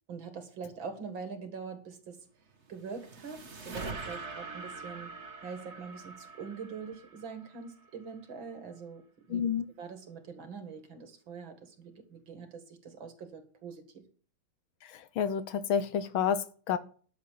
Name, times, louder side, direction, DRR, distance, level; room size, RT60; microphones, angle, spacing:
voice 1, 0.1-2.2 2.7-5.1 5.4-9.0 9.3-9.4 9.8-14.0, right 5 dB, 70° right, 2.7 m, -43 dB
sound 1, 2.5-7.9, right 3 dB, 40° right, 1.5 m, -44 dB
voice 2, 9.3-9.7 14.8-16.8, left 8 dB, 80° left, 1.8 m, -30 dB
11.5 x 7.1 x 6.7 m
omnidirectional pair, 2.2 m